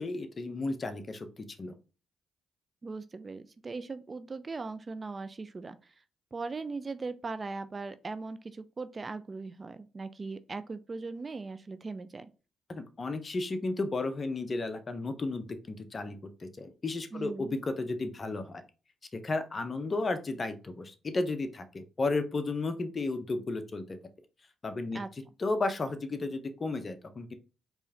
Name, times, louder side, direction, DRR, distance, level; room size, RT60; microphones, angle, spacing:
voice 1, 0.0-1.8 12.7-18.6 19.1-24.0 24.6-25.0 25.4-27.3, left 3 dB, 40° left, 0.8 m, -33 dB
voice 2, 2.8-5.9 6.3-12.3 17.1-17.5 24.9-25.1, right 3 dB, 35° right, 0.4 m, -39 dB
4.5 x 3.1 x 2.8 m
supercardioid pair, 50°, 0 cm